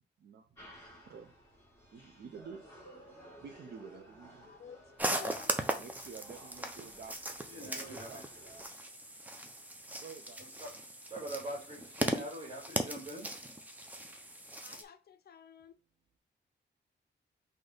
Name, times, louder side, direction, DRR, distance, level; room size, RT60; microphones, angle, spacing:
voice 1, 0.2-0.6 0.9-1.3 1.9-2.7 3.4-4.5 5.8-8.7 10.0-10.4, right 6 dB, 65° right, 0.5 m, -50 dB
sound 1, 0.6-8.7, equal, 15° left, 2.0 m, -56 dB
voice 2, 4.5-4.8 5.0-5.6 14.6-15.8, left 7 dB, 60° left, 0.5 m, -50 dB
sound 2, 5.0-14.8, right 1 dB, 10° right, 0.5 m, -38 dB
voice 3, 7.5-8.2 10.6-10.7 11.1-13.3, right 1 dB, 30° right, 2.4 m, -43 dB
4.0 x 2.7 x 4.9 m
wide cardioid pair, 175°, 18 cm